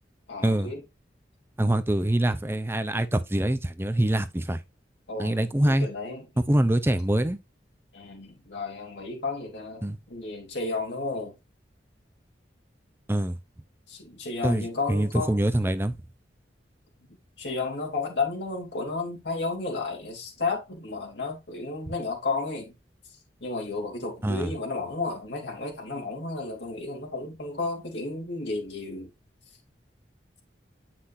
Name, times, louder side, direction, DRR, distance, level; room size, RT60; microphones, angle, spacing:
voice 1, 0.3-0.8 5.1-6.3 7.9-11.3 13.9-15.4 17.4-22.7 23.4-29.1, left 3 dB, 75° left, 3.1 m, -32 dB
voice 2, 1.6-4.6 5.2-5.9 6.5-7.4 9.8-10.0 13.1-13.4 14.4-16.0 24.2-24.5, right 1 dB, 15° right, 0.5 m, -24 dB
8.2 x 5.9 x 2.6 m
head